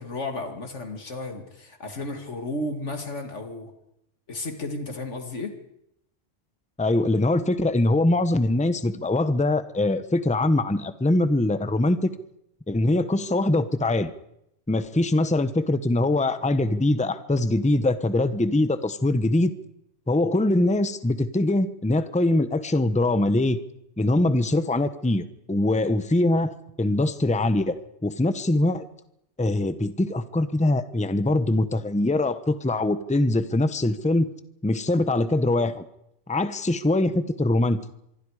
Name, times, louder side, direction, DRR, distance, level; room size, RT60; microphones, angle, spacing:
voice 1, 0.0-3.7 4.3-5.5, left 2 dB, 70° left, 5 dB, 2.5 m, -33 dB
voice 2, 6.8-12.1 12.7-14.1 14.7-19.5 20.1-23.6 24.0-28.8 29.4-34.3 34.6-35.8 36.3-37.8, left 2 dB, 5° left, 12 dB, 0.8 m, -23 dB
25.5 x 23.5 x 4.9 m, 0.80 s
omnidirectional pair, 1.3 m